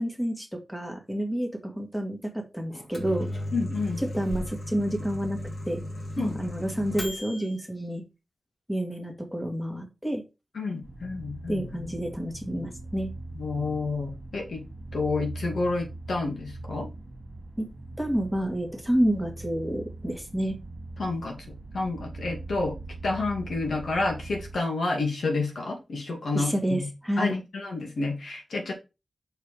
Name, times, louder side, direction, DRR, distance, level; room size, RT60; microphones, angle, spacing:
voice 1, 0.0-3.3 4.1-5.4 5.7-5.8 6.2-8.0 8.7-10.2 11.5-13.1 17.6-17.7 18.0-20.6 26.3-27.3, right 1 dB, 5° left, 3 dB, 1.9 m, -29 dB
Microwave oven, 2.7-7.5, left 1 dB, 45° left, 2.6 m, -35 dB
voice 2, 3.5-4.0 6.2-6.5 10.5-11.9 13.3-14.6 14.9-16.9 21.0-22.7 23.0-26.9 27.2-28.7, left 3 dB, 90° left, 1 dB, 2.3 m, -29 dB
sound 1, 10.8-24.6, right 2 dB, 40° right, 2.1 m, -41 dB
6.6 x 4.7 x 4.8 m, 0.27 s
wide cardioid pair, 110°, 0 cm